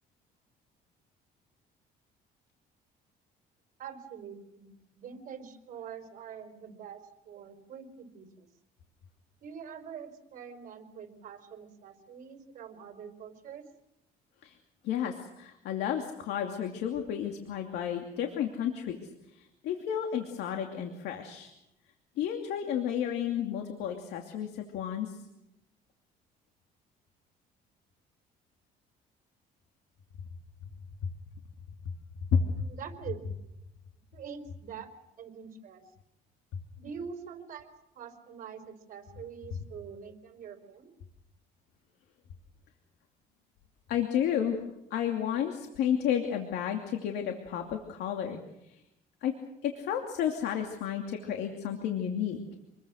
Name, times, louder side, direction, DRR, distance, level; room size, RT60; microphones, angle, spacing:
voice 1, 3.8-8.5 9.4-13.7 32.6-33.4 34.1-34.9 35.2-35.8 36.8-40.9, right 7 dB, 50° right, 5 dB, 4.9 m, -45 dB
voice 2, 14.8-21.5 22.2-25.2 32.3-32.4 43.9-44.6 44.9-48.8 49.2-49.3 49.6-52.4, left 9 dB, 80° left, 4 dB, 2.7 m, -32 dB
28.0 x 22.0 x 6.4 m, 0.87 s
cardioid pair, 110°, 17 cm